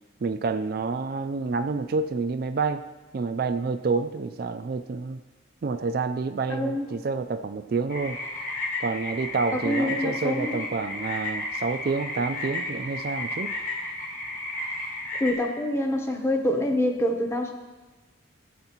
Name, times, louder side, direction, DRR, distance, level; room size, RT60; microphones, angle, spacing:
voice 1, 0.2-2.8 3.1-5.2 5.6-8.2 8.8-13.5, right 4 dB, 50° right, 9 dB, 0.4 m, -28 dB
voice 2, 6.5-6.9 9.6-10.6 15.2-17.5, left 1 dB, 15° left, 4 dB, 0.7 m, -26 dB
sound 1, 7.9-15.3, left 2 dB, 40° left, 1.3 m, -33 dB
14.0 x 8.0 x 2.9 m, 1.2 s
head